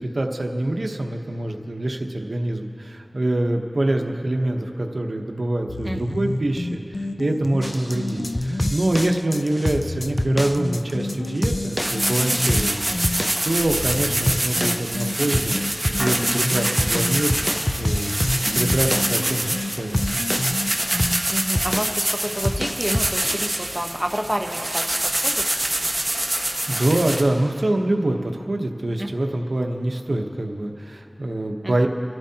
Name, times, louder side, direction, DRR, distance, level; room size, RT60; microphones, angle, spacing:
voice 1, 0.0-20.2 26.3-31.9, right 1 dB, 75° right, 3 dB, 0.9 m, -25 dB
sound 1, 5.7-9.2 9.7-13.2 13.7-21.5, left 2 dB, 90° left, 0.5 m, -30 dB
voice 2, 5.8-6.2 12.9-13.0 13.8-14.0 18.4-18.6 21.3-25.5 29.0-29.1 31.6-31.9, right 1 dB, 15° right, 2 dB, 1.0 m, -29 dB
sound 2, 7.6-23.1, left 1 dB, 20° left, 0.3 m, -28 dB
sound 3, 11.8-27.2, right 1 dB, 30° right, 1.4 m, -25 dB
27.5 x 12.0 x 2.8 m, 2.8 s
wide cardioid pair, 55°, 0 cm